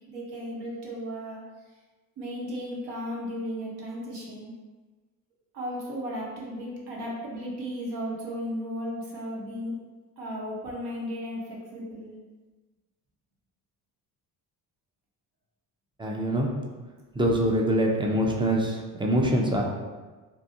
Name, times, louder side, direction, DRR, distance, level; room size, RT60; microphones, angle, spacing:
voice 1, 0.1-1.4 2.2-4.5 5.5-9.7 10.2-12.1, equal, 65° right, -3 dB, 1.0 m, -35 dB
voice 2, 16.0-16.5 17.2-19.6, right 1 dB, 10° right, -1 dB, 0.4 m, -24 dB
2.8 x 2.3 x 2.6 m, 1.3 s
hypercardioid pair, 60°, 45 cm